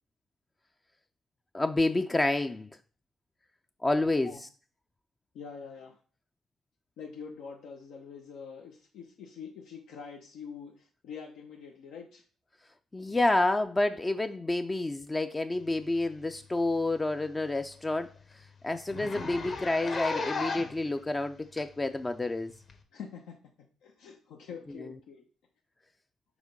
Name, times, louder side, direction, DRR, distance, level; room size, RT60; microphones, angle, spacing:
voice 1, 1.5-2.7 3.8-4.5 12.9-22.5 24.8-24.9, left 2 dB, 20° left, 0.4 m, -29 dB
voice 2, 5.3-6.0 7.0-12.2 22.9-23.4 23.8-25.2, left 6 dB, 85° left, 0.9 m, -45 dB
Zipper (clothing), 16.2-16.4 16.8-16.9 17.2-17.3 17.7-17.8 18.0-18.2 18.9-20.8 21.6-21.7 22.7-22.8, left 3 dB, 45° left, 1.3 m, -35 dB
4.9 x 4.3 x 5.3 m
cardioid pair, 90°, 0 cm